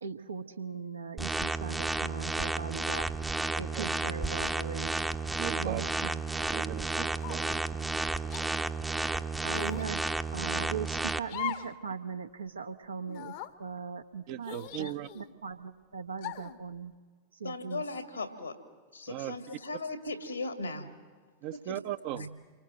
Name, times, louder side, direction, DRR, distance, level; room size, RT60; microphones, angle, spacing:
voice 1, 0.0-3.1 3.6-4.9 5.5-6.2 7.4-7.5 9.4-10.0 10.3-13.3 13.6-16.9 17.4-17.8, right 6 dB, 75° right, 7 dB, 1.2 m, -39 dB
sound 1, 1.2-11.2, right 3 dB, 10° right, 0.8 m, -32 dB
voice 2, 5.4-5.8 6.5-7.6 14.3-15.1 19.1-19.4 21.4-22.3, right 13 dB, 45° right, 12 dB, 0.9 m, -38 dB
sound 2, 7.2-7.6 8.3-8.5 9.5-9.9 11.3-11.8 12.1-12.2 13.1-13.5 14.4-15.3 16.2-16.6, left 12 dB, 50° left, 1.1 m, -40 dB
voice 3, 17.4-18.6 18.9-20.9 21.5-21.8 22.1-22.4, left 3 dB, 80° left, 8 dB, 2.3 m, -38 dB
29.0 x 24.0 x 7.7 m, 1.5 s
figure-of-eight pair, 90°, 0 cm